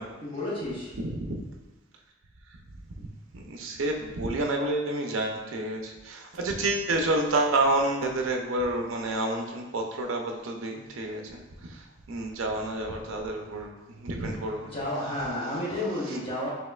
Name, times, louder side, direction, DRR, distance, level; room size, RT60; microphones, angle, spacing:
voice 1, 0.2-0.9 14.7-16.5, left 1 dB, 30° left, -5 dB, 1.0 m, -31 dB
voice 2, 1.0-1.4 3.3-14.7 16.0-16.2, right 2 dB, 75° right, 2 dB, 0.5 m, -29 dB
5.2 x 3.0 x 2.3 m, 1.1 s
head